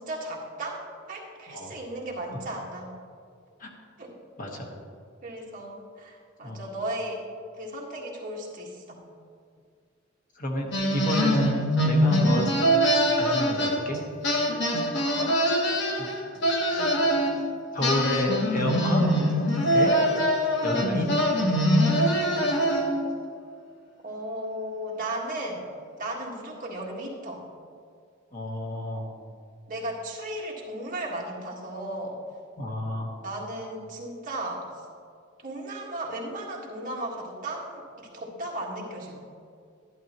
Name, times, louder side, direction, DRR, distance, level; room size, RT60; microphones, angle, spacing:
voice 1, 0.0-2.9 4.0-4.1 5.2-7.2 7.6-9.0 15.0-15.4 24.0-25.7 26.0-27.4 29.7-32.2 33.2-34.7 35.4-39.2, right 1 dB, 45° right, -2 dB, 1.6 m, -35 dB
voice 2, 4.4-4.7 6.4-6.6 10.4-12.5 13.2-14.0 15.9-16.1 17.7-19.1 19.7-19.9 20.6-21.0 28.3-29.1 32.6-33.1, left 1 dB, 45° left, 0 dB, 1.3 m, -29 dB
sound 1, 10.7-14.0 14.2-17.3 17.8-23.1, equal, 60° left, 1.5 m, -23 dB
12.0 x 11.0 x 3.0 m, 2.2 s
head